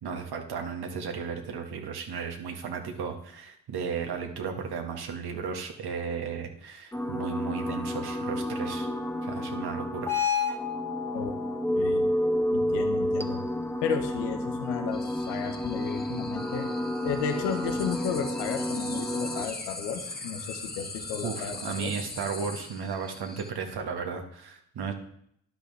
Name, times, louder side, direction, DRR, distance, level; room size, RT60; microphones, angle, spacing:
voice 1, 0.0-8.9 9.2-10.1 21.2-24.9, right 6 dB, 60° right, 3 dB, 1.7 m, -34 dB
sound 1, 6.9-19.4, left 1 dB, 5° left, 1.5 m, -30 dB
voice 2, 11.7-12.0 12.5-13.4 13.8-16.7 17.0-21.9, left 7 dB, 80° left, 7 dB, 1.3 m, -33 dB
sound 2, 14.9-23.5, left 3 dB, 20° left, 1.6 m, -41 dB
12.5 x 10.5 x 3.4 m, 0.70 s
hypercardioid pair, 45°, 43 cm